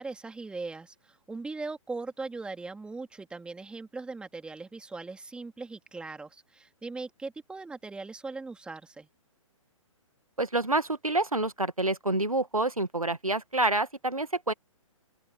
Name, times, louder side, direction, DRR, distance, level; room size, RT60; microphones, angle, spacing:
voice 1, 0.0-9.1, right 3 dB, 5° right, 2.9 m, -39 dB
voice 2, 10.4-14.5, right 2 dB, 85° right, 1.7 m, -27 dB
open air
figure-of-eight pair, 125°, 17 cm